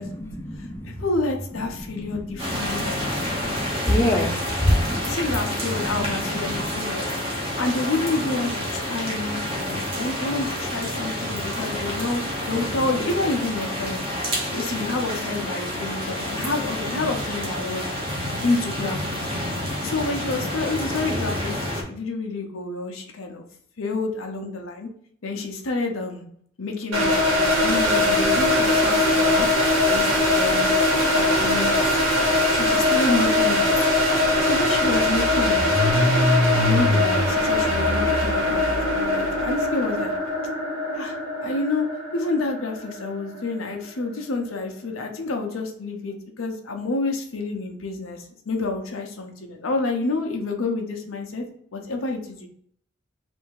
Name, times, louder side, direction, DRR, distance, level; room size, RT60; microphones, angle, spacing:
voice 1, 0.0-0.9 1.7-5.0 5.8-6.7, left 1 dB, 15° left, 2 dB, 0.5 m, -27 dB
voice 2, 0.6-3.0 4.1-4.3 5.1-7.1 7.6-17.9 18.4-19.0 19.8-23.4 23.8-24.9 25.2-26.3 26.6-29.5 29.9-30.7 31.1-31.7 32.5-33.7 34.4-35.6 36.5-40.1 40.9-41.9 42.1-51.4 51.7-52.5, left 3 dB, 90° left, 3 dB, 0.8 m, -28 dB
sound 1, 2.4-21.8, equal, 30° right, 1.0 m, -29 dB
sound 2, 26.9-43.8, left 1 dB, 80° right, 1.8 m, -21 dB
Car / Engine starting, 33.8-33.9 34.2-39.4, left 1 dB, 50° right, 1.7 m, -26 dB
3.4 x 2.7 x 4.6 m, 0.64 s
head